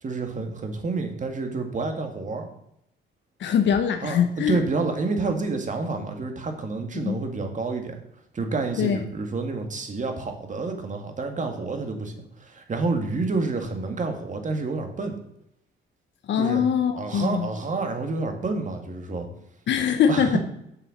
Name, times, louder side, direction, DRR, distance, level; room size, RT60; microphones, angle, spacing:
voice 1, 0.0-2.5 4.0-8.0 8.3-15.2 16.4-16.6 16.9-19.3 20.1-20.4, right 3 dB, 40° right, 5 dB, 2.0 m, -29 dB
voice 2, 3.4-4.6 6.9-7.2 8.8-9.0 16.3-17.5 19.7-20.4, left 8 dB, 65° left, 7 dB, 0.8 m, -22 dB
7.9 x 6.9 x 6.6 m, 0.78 s
cardioid pair, 90°, 20 cm